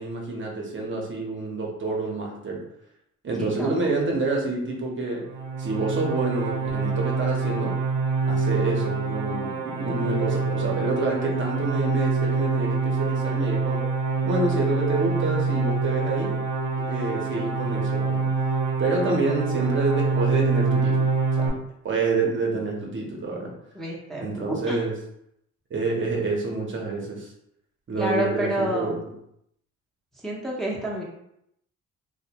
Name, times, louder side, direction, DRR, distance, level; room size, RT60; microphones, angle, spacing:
voice 1, 0.0-2.7 3.2-5.3 5.6-7.8 8.2-13.9 14.2-16.4 16.8-18.3 18.8-21.5 21.8-23.5 24.2-24.9 25.7-27.3 27.9-29.0, right 3 dB, 40° right, -1 dB, 0.7 m, -28 dB
voice 2, 3.4-3.9 23.7-24.8 28.0-29.0 30.2-31.0, right 1 dB, ahead, -4 dB, 0.6 m, -29 dB
sound 1, 5.2-21.5, right 4 dB, 80° right, 0.5 m, -25 dB
2.5 x 2.1 x 2.8 m, 0.76 s
cardioid pair, 90°, 30 cm